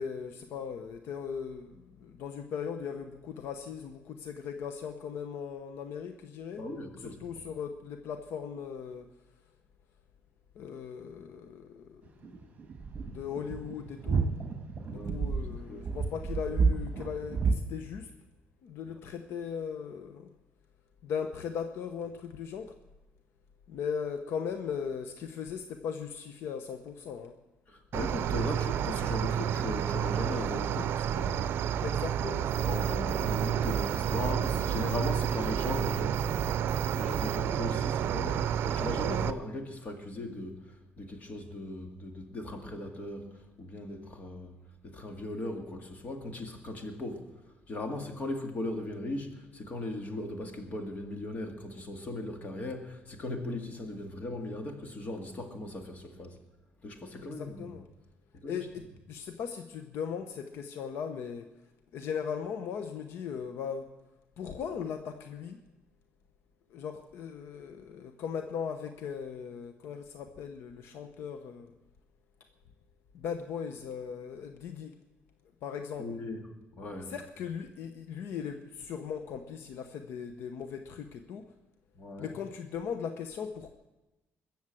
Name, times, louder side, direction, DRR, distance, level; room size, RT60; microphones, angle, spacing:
voice 1, 0.0-6.6 7.2-9.1 10.6-12.1 13.0-14.3 14.9-18.1 18.6-20.3 21.0-22.7 23.7-27.3 31.8-32.7 33.1-33.3 57.2-57.8 58.5-61.5 61.9-63.9 64.4-65.6 66.7-71.7 73.1-75.0 75.6-76.1 77.1-81.5 82.2-83.7, left 7 dB, 75° left, 7 dB, 0.8 m, -38 dB
voice 2, 6.6-7.5 14.8-15.4 15.6-15.9 27.7-31.8 32.7-36.5 37.0-44.5 44.8-47.3 47.7-56.4 56.8-57.7 58.3-58.6 76.0-76.4 76.7-77.1 81.9-82.3, left 1 dB, 40° left, 4 dB, 2.1 m, -38 dB
sound 1, 12.1-17.5, right 5 dB, 35° right, 1.8 m, -30 dB
Cricket, 27.9-39.3, right 9 dB, 65° right, 0.6 m, -30 dB
sound 2, 32.5-37.4, right 4 dB, 15° right, 6.9 m, -41 dB
21.0 x 7.2 x 7.7 m, 1.0 s
cardioid pair, 135°, 4 cm